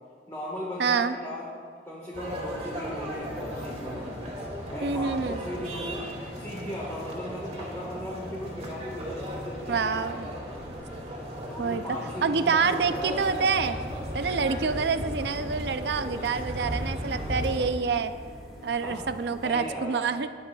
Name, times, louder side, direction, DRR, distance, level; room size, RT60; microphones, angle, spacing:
voice 1, 0.3-1.5 1.8-4.1 4.7-10.6 11.5-13.5 18.8-19.0 19.4-20.0, equal, 15° left, -6 dB, 1.6 m, -38 dB
voice 2, 0.8-1.2 4.8-5.4 9.7-10.3 11.6-11.8 12.2-13.8 14.1-18.1 18.6-20.3, right 5 dB, 65° right, 11 dB, 0.5 m, -27 dB
sound 1, 2.1-17.7, equal, 35° right, 2.4 m, -36 dB
sound 2, 14.5-19.7, equal, 5° right, 2.5 m, -45 dB
17.5 x 10.5 x 2.4 m, 2.1 s
head